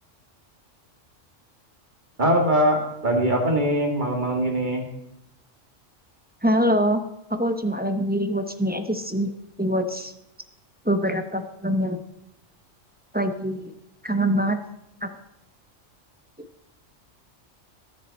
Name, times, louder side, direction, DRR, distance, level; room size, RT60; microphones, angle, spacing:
voice 1, 2.2-4.9, right 1 dB, 40° right, 1 dB, 2.3 m, -22 dB
voice 2, 6.4-7.0 7.3-9.3 9.6-10.1 10.8-12.0 13.1-13.7 14.0-14.6 15.0-15.1, equal, 10° right, 6 dB, 0.7 m, -24 dB
20.5 x 7.3 x 4.2 m, 0.86 s
omnidirectional pair, 1.3 m